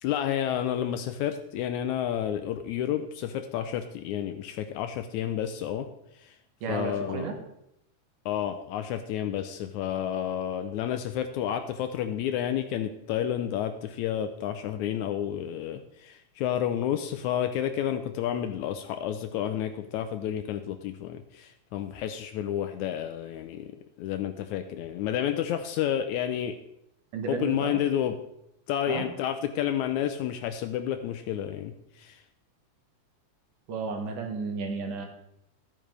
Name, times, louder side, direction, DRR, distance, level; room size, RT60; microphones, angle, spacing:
voice 1, 0.0-5.9 6.2-6.3 6.7-7.3 8.3-23.7 24.0-26.6 27.3-28.2 28.7-32.2, left 10 dB, 80° left, 8 dB, 1.9 m, -30 dB
voice 2, 6.6-7.3 27.1-27.8 28.9-29.1 33.7-35.1, right 5 dB, 75° right, 3 dB, 3.0 m, -33 dB
13.5 x 8.9 x 3.4 m, 0.79 s
omnidirectional pair, 3.7 m